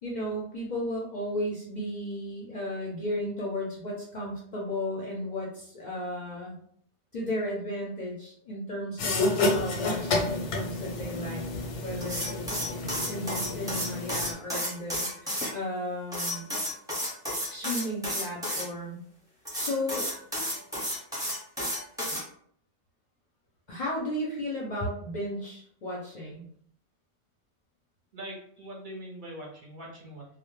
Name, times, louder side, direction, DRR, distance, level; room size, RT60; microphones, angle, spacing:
voice 1, 0.0-6.6 7.1-11.4 11.8-12.8 13.1-16.4 17.5-19.0 19.5-20.1 23.7-26.5, left 1 dB, 55° left, -4 dB, 0.5 m, -34 dB
sound 1, 9.0-14.3, left 2 dB, 85° left, 0.9 m, -30 dB
sound 2, 12.0-15.5 16.1-18.6 19.4-22.2, equal, 5° right, 0.6 m, -32 dB
voice 2, 12.5-13.0 28.1-30.3, right 1 dB, 55° right, -3 dB, 0.7 m, -43 dB
2.1 x 2.0 x 3.0 m, 0.63 s
omnidirectional pair, 1.2 m